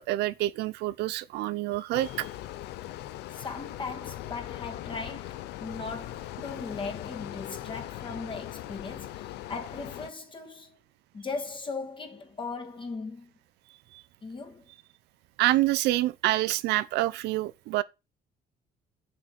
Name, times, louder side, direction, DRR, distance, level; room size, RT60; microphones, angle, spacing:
voice 1, 0.0-2.3 13.9-14.0 15.4-17.8, right 16 dB, 85° right, 0.7 m, -27 dB
sound 1, 1.9-10.1, left 14 dB, 85° left, 0.8 m, -40 dB
voice 2, 3.3-10.8 11.1-13.3 14.2-14.7, left 4 dB, 30° left, 2.6 m, -38 dB
7.6 x 6.5 x 6.2 m
cardioid pair, 110°, 17 cm